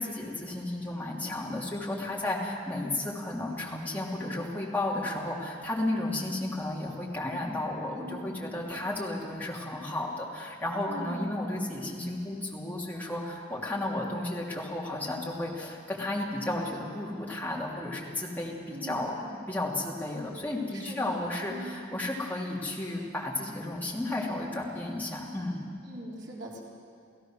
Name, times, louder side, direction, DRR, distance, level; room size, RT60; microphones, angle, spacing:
voice 1, 0.0-25.6, left 1 dB, 10° left, -4 dB, 2.9 m, -33 dB
voice 2, 7.9-8.4 10.9-11.3 18.7-19.1 20.7-21.8 25.8-26.6, right 1 dB, 60° right, -3 dB, 3.8 m, -41 dB
29.0 x 16.0 x 6.4 m, 2.3 s
head